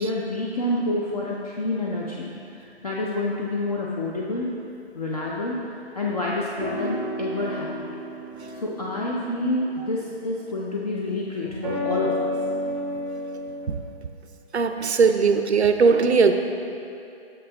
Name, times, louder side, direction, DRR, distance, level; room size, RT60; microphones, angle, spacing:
voice 1, 0.0-4.5 4.9-5.6 5.9-7.9 8.5-12.4, left 2 dB, 35° left, -4 dB, 0.5 m, -28 dB
sound 1, 6.6-9.8 11.4-13.7, left 1 dB, 20° right, 0.5 m, -31 dB
voice 2, 14.5-16.3, right 5 dB, 85° right, 7 dB, 0.6 m, -19 dB
7.6 x 6.6 x 2.9 m, 2.7 s
figure-of-eight pair, 150°, 33 cm